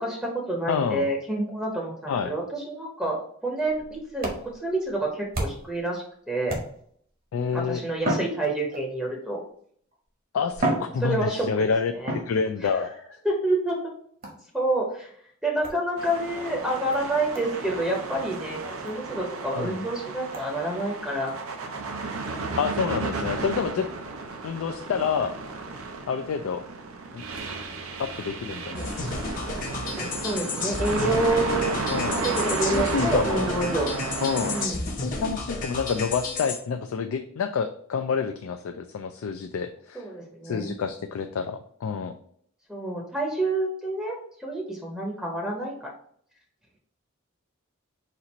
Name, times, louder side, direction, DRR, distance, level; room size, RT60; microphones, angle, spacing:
voice 1, 0.0-6.5 7.5-9.4 11.0-11.5 11.9-12.1 12.7-12.9 13.2-13.8 14.5-15.1 15.4-18.6 18.8-21.4 28.7-28.9 29.9-31.7 32.1-33.9 34.4-34.9 39.9-40.7 42.7-45.7, right 1 dB, 5° right, -2 dB, 0.7 m, -28 dB
voice 2, 0.7-1.1 2.1-2.3 7.3-7.8 10.3-12.9 19.6-19.8 22.6-23.9 24.4-25.3 26.1-26.6 27.1-27.2 28.0-28.9 31.9-33.5 34.2-34.6 35.0-40.0 40.4-42.1, left 6 dB, 75° left, 6 dB, 0.3 m, -28 dB
sound 1, 3.6-5.8 6.5-7.1 8.0-9.1 9.9-10.0 10.5-11.6 12.1-12.8 14.2-14.5 15.6-15.8 16.4-16.5 16.9-17.0 17.3-17.5 17.8-17.9 18.3-18.4 18.9-19.0 19.4-19.5 20.3-20.5, right 1 dB, 45° right, 1.0 m, -32 dB
sound 2, 16.0-34.7, right 3 dB, 85° right, 0.6 m, -33 dB
sound 3, 28.7-36.6, left 3 dB, 40° left, 0.7 m, -32 dB
4.3 x 2.5 x 4.1 m, 0.63 s
head